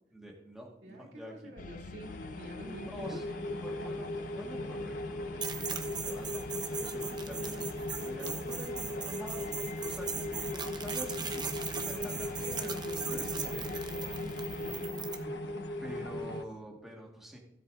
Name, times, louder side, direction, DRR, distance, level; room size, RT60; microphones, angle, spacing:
voice 1, 0.1-1.5 2.8-9.5 9.8-12.3 13.1-13.8 15.8-17.4, equal, ahead, -1 dB, 1.6 m, -47 dB
voice 2, 0.8-2.1 2.4-3.2 11.8-13.4 13.6-15.4 16.7-16.8, right 1 dB, 75° right, -1 dB, 2.7 m, -47 dB
sound 1, 1.6-14.9, left 4 dB, 45° left, 0.4 m, -48 dB
sound 2, 2.0-16.4, left 1 dB, 75° left, 1.2 m, -38 dB
sound 3, 5.4-15.2, right 6 dB, 25° right, 0.8 m, -39 dB
16.5 x 8.0 x 2.6 m, 0.81 s
head